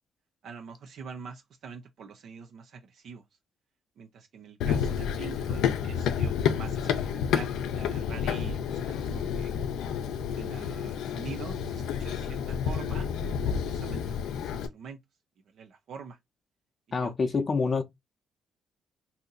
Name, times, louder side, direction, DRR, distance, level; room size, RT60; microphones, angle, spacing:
voice 1, 0.4-3.2 4.0-9.5 10.3-13.1 13.4-15.0 15.5-16.2 17.0-17.4, right 6 dB, 70° right, 0.5 m, -45 dB
Run, 4.6-14.7, left 8 dB, 85° left, 0.5 m, -30 dB
voice 2, 16.9-17.8, left 4 dB, 40° left, 0.6 m, -26 dB
2.7 x 2.7 x 3.8 m
cardioid pair, 90°, 0 cm